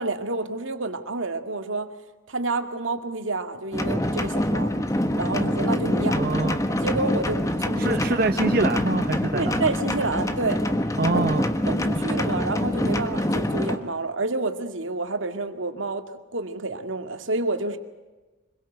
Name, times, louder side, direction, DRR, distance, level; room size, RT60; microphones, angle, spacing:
voice 1, 0.0-1.9 2.3-4.7 5.2-6.4 6.7-8.0 9.3-10.6 11.1-11.2 11.6-17.8, right 3 dB, 80° right, 7 dB, 2.1 m, -29 dB
sound 1, 3.7-13.8, left 1 dB, 15° left, 1.2 m, -25 dB
voice 2, 6.1-6.6 7.8-9.6 11.0-11.5, right 2 dB, 50° right, 6 dB, 0.9 m, -24 dB
25.5 x 22.0 x 8.0 m, 1.2 s
head